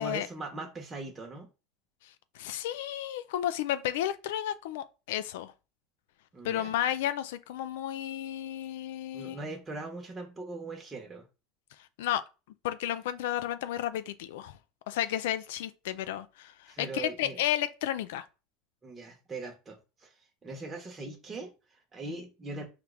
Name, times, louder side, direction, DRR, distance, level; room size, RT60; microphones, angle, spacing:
voice 1, 0.0-1.5 6.3-6.7 9.1-11.3 16.7-17.4 18.8-22.7, right 3 dB, 20° right, 1.0 m, -41 dB
voice 2, 2.0-5.5 6.4-9.4 12.0-12.2 12.6-14.6 14.9-18.3, left 12 dB, 80° left, 0.3 m, -32 dB
4.6 x 2.5 x 3.3 m
supercardioid pair, 105°, 0 cm